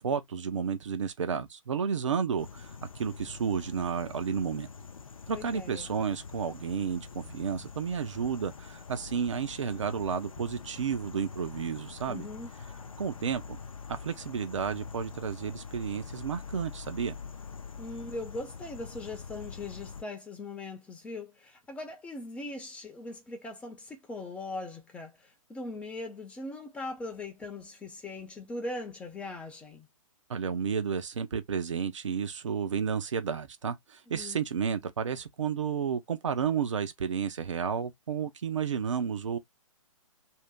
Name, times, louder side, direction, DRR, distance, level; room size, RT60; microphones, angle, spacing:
voice 1, 0.0-4.7 5.3-12.3 13.0-13.6 13.9-17.2 30.3-39.4, right 6 dB, 60° right, 0.8 m, -32 dB
sound 1, 2.4-20.0, left 5 dB, 70° left, 0.6 m, -45 dB
voice 2, 5.3-5.9 12.1-12.5 17.8-29.9 34.1-34.4, left 2 dB, 5° left, 0.5 m, -40 dB
2.8 x 2.8 x 3.5 m
figure-of-eight pair, 125°, 18 cm